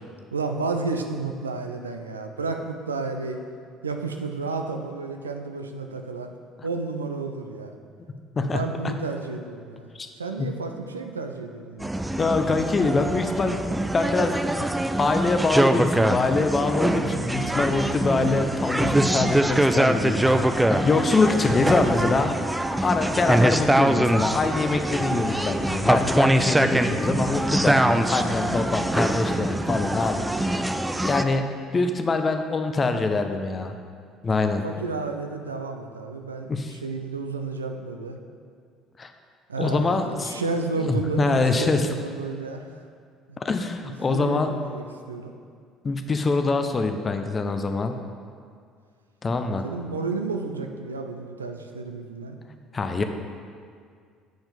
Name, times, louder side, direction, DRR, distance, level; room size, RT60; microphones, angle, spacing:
voice 1, 0.3-3.4 3.8-6.3 6.6-7.8 8.4-9.9 10.2-12.0 34.4-38.2 39.5-42.8 43.3-43.4 43.8-45.3 49.6-52.4, right 3 dB, 80° right, 5 dB, 0.4 m, -31 dB
sound 1, 11.8-31.2, right 1 dB, 10° right, 0.3 m, -23 dB
voice 2, 12.2-13.7 13.9-14.4 15.0-22.3 22.8-30.7 31.0-33.7 34.2-34.6 36.5-36.8 39.0-39.1 39.6-40.4 40.8-41.9 43.4-44.5 45.8-47.9 49.2-49.6 52.7-53.0, left 3 dB, 30° left, 6 dB, 0.6 m, -24 dB
7.8 x 4.4 x 5.2 m, 2.2 s
figure-of-eight pair, 55°, 0 cm